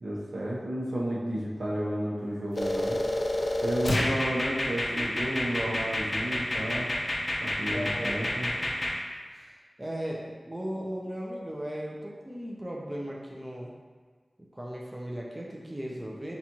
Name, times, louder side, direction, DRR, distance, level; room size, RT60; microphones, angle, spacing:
voice 1, 0.0-3.0 3.6-6.9 7.4-8.5, right 1 dB, 80° right, -6 dB, 0.8 m, -32 dB
sound 1, 2.5-9.0, left 1 dB, 55° left, 0.4 m, -29 dB
voice 2, 7.6-8.8 9.3-13.7 14.5-16.3, equal, 20° right, -3 dB, 0.4 m, -37 dB
4.0 x 2.4 x 2.9 m, 1.5 s
wide cardioid pair, 75°, 0 cm